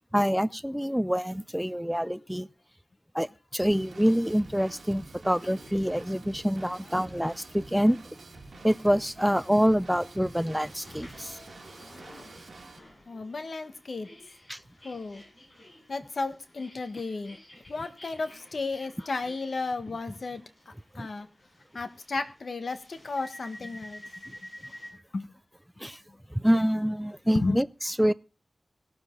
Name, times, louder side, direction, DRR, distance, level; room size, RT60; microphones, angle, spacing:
voice 1, 0.1-2.5 3.1-8.0 8.6-11.4 14.5-14.6 21.0-21.1 25.8-26.0 26.3-28.1, equal, 5° right, 0.5 m, -26 dB
Drum kit / Drum, 3.6-12.8, right 3 dB, 75° right, 1.7 m, -48 dB
sound 1, 5.6-24.9, left 1 dB, 40° left, 7.0 m, -52 dB
voice 2, 13.1-14.1 14.8-15.2 15.9-17.4 17.7-21.3 21.7-24.0 25.1-25.3 27.3-27.6, left 3 dB, 70° left, 1.4 m, -33 dB
18.5 x 7.3 x 3.9 m
wide cardioid pair, 60°, 0 cm